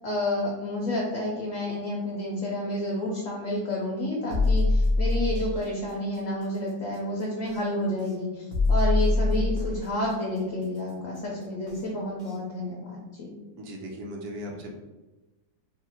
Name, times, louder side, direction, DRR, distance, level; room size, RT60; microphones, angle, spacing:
voice 1, 0.0-13.3, left 1 dB, 60° left, -4 dB, 1.0 m, -30 dB
sound 1, 4.3-5.6 7.4-7.6 8.5-9.8 11.7-11.8 12.3-12.4, left 2 dB, 40° right, 0.8 m, -23 dB
voice 2, 13.6-14.7, equal, 75° right, 0 dB, 1.2 m, -37 dB
3.1 x 2.5 x 4.2 m, 1.1 s
omnidirectional pair, 1.7 m